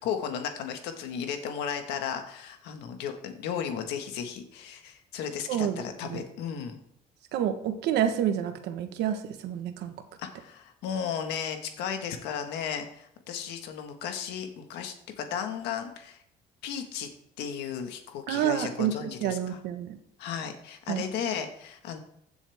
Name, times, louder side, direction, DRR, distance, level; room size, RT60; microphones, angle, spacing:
voice 1, 0.0-6.8 10.2-16.2 16.6-17.1 17.4-19.6 20.2-22.0, left 8 dB, 90° left, 6 dB, 1.5 m, -35 dB
voice 2, 5.5-6.2 7.3-9.9 18.3-20.0 20.9-21.0, right 9 dB, 80° right, 8 dB, 1.3 m, -29 dB
15.5 x 7.1 x 3.5 m, 0.73 s
cardioid pair, 110°, 17 cm